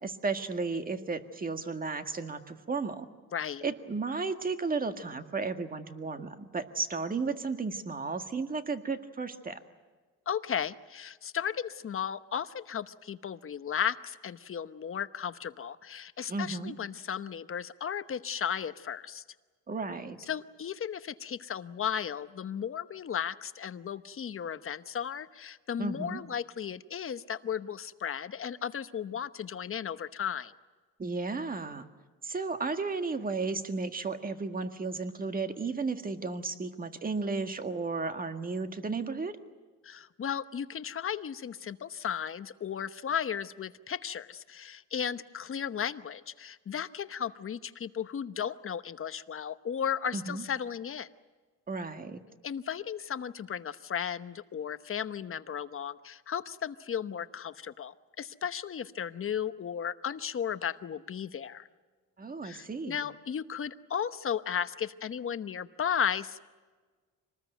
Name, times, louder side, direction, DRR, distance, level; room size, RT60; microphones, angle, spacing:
voice 1, 0.0-3.1 3.6-9.6 16.3-16.7 19.7-20.2 25.8-26.2 31.0-31.9 32.2-39.4 50.1-50.4 51.7-52.2 62.2-63.0, right 4 dB, 25° right, 7 dB, 1.8 m, -34 dB
voice 2, 3.3-3.6 10.3-19.2 20.3-30.5 39.8-51.1 52.4-61.7 62.4-66.4, left 8 dB, 40° left, 12 dB, 1.0 m, -35 dB
26.0 x 20.0 x 9.2 m, 1.4 s
cardioid pair, 105°, 33 cm